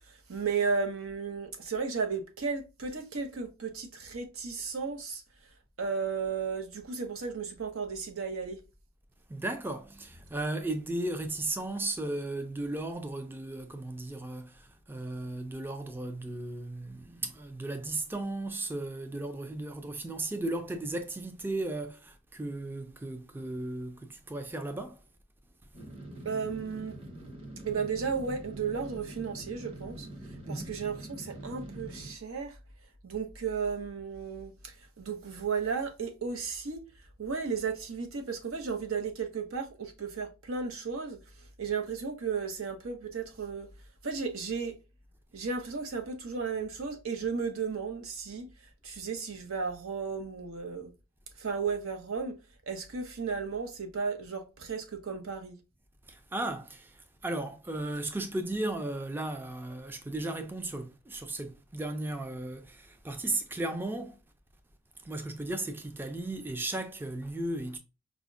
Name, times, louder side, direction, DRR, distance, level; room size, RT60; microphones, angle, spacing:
voice 1, 0.1-5.2 5.8-8.6 26.2-27.0 27.6-30.1 30.5-32.6 33.0-36.8 37.2-41.2 41.6-43.7 44.0-44.8 45.3-48.5 48.8-50.9 51.4-52.4 52.7-55.6, right 5 dB, 90° right, 0.7 m, -34 dB
voice 2, 9.3-25.0 30.5-30.6 56.1-64.2 65.0-67.8, right 2 dB, 10° right, 0.3 m, -35 dB
sound 1, 25.7-32.1, right 1 dB, 30° right, 0.7 m, -45 dB
4.8 x 2.1 x 2.4 m
head